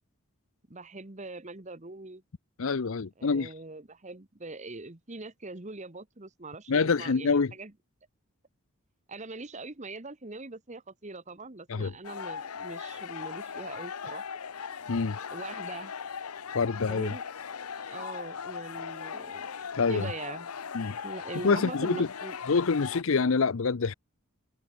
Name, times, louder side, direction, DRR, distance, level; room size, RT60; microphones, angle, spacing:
voice 1, 0.7-2.2 3.2-7.7 9.1-14.3 15.3-15.9 16.9-17.2 17.9-19.5 19.9-20.5 21.0-22.4, right 2 dB, 30° right, 1.3 m, -42 dB
voice 2, 2.6-3.5 6.7-7.5 11.7-11.9 14.9-15.2 16.5-17.1 19.8-20.1 20.7-21.0 21.4-22.1 22.5-23.9, left 4 dB, 65° left, 0.6 m, -26 dB
sound 1, 12.0-23.0, left 6 dB, 90° left, 0.8 m, -39 dB
head